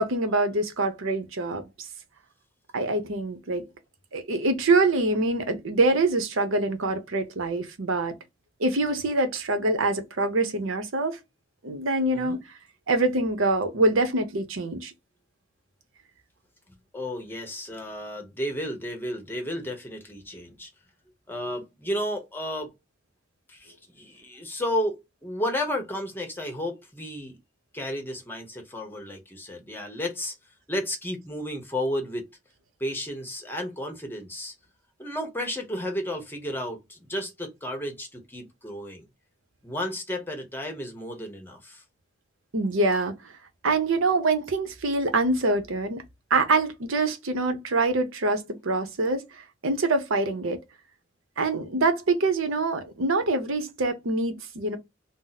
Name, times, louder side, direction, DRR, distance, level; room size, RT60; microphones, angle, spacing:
voice 1, 0.0-1.9 2.7-3.6 4.1-8.1 8.6-11.2 11.6-12.4 12.9-14.9 42.5-43.1 43.6-46.0 46.3-50.6 51.4-54.8, right 2 dB, 85° right, 0.7 m, -25 dB
voice 2, 16.9-20.7 21.3-22.7 23.5-27.4 27.7-30.3 30.7-32.3 32.8-34.5 35.0-39.1 39.6-41.8, left 1 dB, 10° left, 0.8 m, -32 dB
2.7 x 2.0 x 3.9 m
head